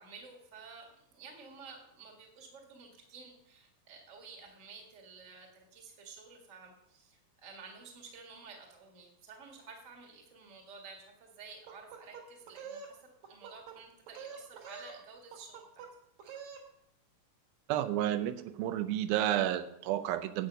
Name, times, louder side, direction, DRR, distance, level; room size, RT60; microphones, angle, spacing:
voice 1, 0.0-13.0 13.3-15.8, right 4 dB, 30° right, 1 dB, 1.5 m, -52 dB
sound 1, 11.7-12.9 13.2-13.8 14.1-15.0 15.3-15.9 16.2-16.7, right 6 dB, 60° right, 2.5 m, -46 dB
voice 2, 17.7-20.5, right 12 dB, 85° right, 11 dB, 2.5 m, -31 dB
10.5 x 8.1 x 5.3 m, 0.77 s
omnidirectional pair, 4.2 m